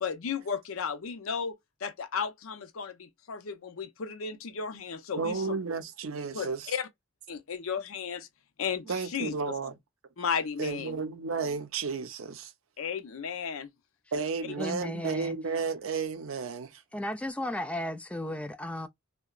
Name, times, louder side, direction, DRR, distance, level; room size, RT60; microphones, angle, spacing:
voice 1, 0.0-1.5 1.8-5.6 6.3-6.9 7.3-8.3 8.6-8.9 9.1-9.5 10.2-11.0 12.8-13.7, left 6 dB, 85° left, 0.6 m, -34 dB
voice 2, 5.2-6.7 8.9-9.8 10.6-12.5 14.1-16.8, right 4 dB, 80° right, 0.6 m, -33 dB
voice 3, 14.6-15.4 16.9-18.9, left 1 dB, 5° left, 0.3 m, -34 dB
2.8 x 2.1 x 2.3 m
head